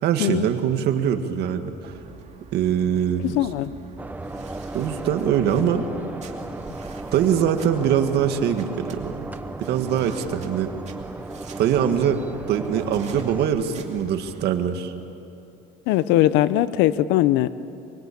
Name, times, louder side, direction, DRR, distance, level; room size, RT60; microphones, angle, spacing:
voice 1, 0.0-1.9 2.5-3.4 4.7-5.9 7.1-9.3 9.6-10.7 11.6-12.2 12.5-14.9, right 9 dB, 65° right, 6 dB, 2.1 m, -23 dB
sound 1, 1.8-14.4, right 5 dB, 40° right, 2.7 m, -45 dB
voice 2, 3.2-3.7 15.9-17.5, left 14 dB, 85° left, 15 dB, 0.9 m, -20 dB
sound 2, 4.0-13.5, right 2 dB, 10° right, 0.9 m, -36 dB
24.5 x 23.5 x 8.7 m, 2.7 s
cardioid pair, 120°, 18 cm